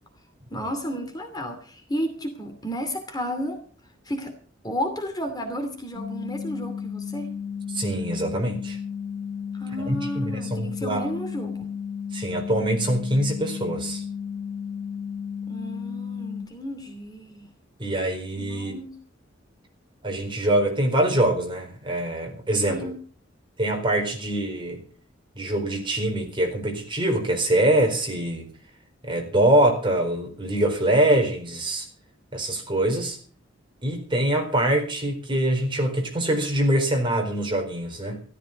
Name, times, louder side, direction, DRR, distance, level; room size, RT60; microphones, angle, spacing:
voice 1, 0.5-3.6 4.0-4.3 4.6-7.3 9.5-11.7 15.5-17.5 18.4-18.9 22.6-23.0, equal, 20° left, 5 dB, 2.6 m, -32 dB
sound 1, 5.9-16.4, left 7 dB, 80° right, 3.0 m, -33 dB
voice 2, 7.7-8.8 9.8-11.1 12.1-14.0 17.8-18.8 20.0-22.9 23.6-24.8 25.4-28.5 29.0-31.9 32.3-33.2 33.8-38.2, right 1 dB, 25° right, 2 dB, 4.4 m, -24 dB
14.5 x 14.0 x 5.3 m, 0.42 s
head